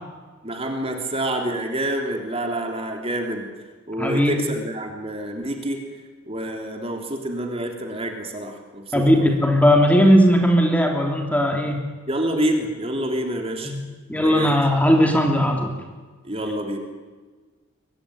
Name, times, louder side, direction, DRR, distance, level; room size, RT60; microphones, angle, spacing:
voice 1, 0.4-3.5 3.9-5.8 6.3-9.3 12.1-13.7 14.1-14.6 16.2-16.8, right 1 dB, 30° right, 3 dB, 3.3 m, -27 dB
voice 2, 4.0-4.5 8.9-11.8 13.6-13.8 14.1-15.7, equal, 5° left, 2 dB, 3.1 m, -18 dB
23.0 x 22.5 x 10.0 m, 1.4 s
head